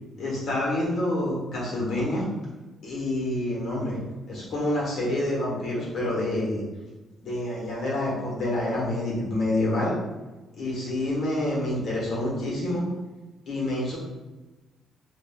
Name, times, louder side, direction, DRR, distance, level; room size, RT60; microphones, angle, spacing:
voice 1, 0.2-2.2 2.8-4.0 4.3-6.6 7.2-9.9 10.6-12.8 13.5-14.0, left 1 dB, 60° left, -4 dB, 1.3 m, -27 dB
4.6 x 2.6 x 2.3 m, 1.1 s
cardioid pair, 90°, 0 cm